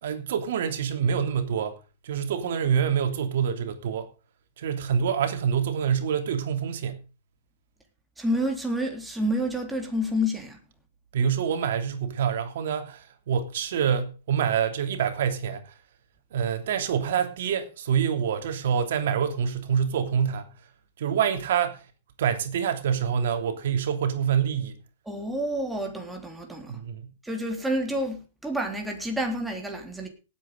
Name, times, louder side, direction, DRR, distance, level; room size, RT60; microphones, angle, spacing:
voice 1, 0.0-1.8 2.0-4.1 4.6-7.0 11.1-15.7 16.3-20.5 21.0-21.8 22.2-24.8 26.7-27.0, right 7 dB, 70° right, 3.0 m, -26 dB
voice 2, 8.2-10.6 25.1-26.8 27.2-30.1, equal, 5° right, 3.6 m, -29 dB
18.5 x 8.6 x 5.2 m
hypercardioid pair, 145°, 0 cm